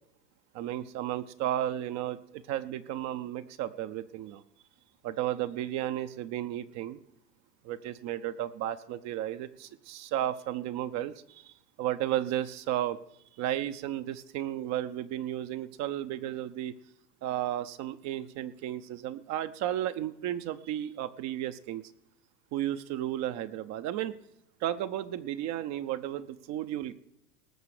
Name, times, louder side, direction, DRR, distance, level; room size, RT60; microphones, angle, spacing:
voice 1, 0.5-4.4 5.0-7.0 7.6-11.5 11.8-13.0 13.4-16.7 17.2-21.8 22.5-24.1 24.6-26.9, right 12 dB, 35° right, 10 dB, 0.7 m, -33 dB
19.0 x 6.7 x 6.6 m, 0.81 s
hypercardioid pair, 100°, 48 cm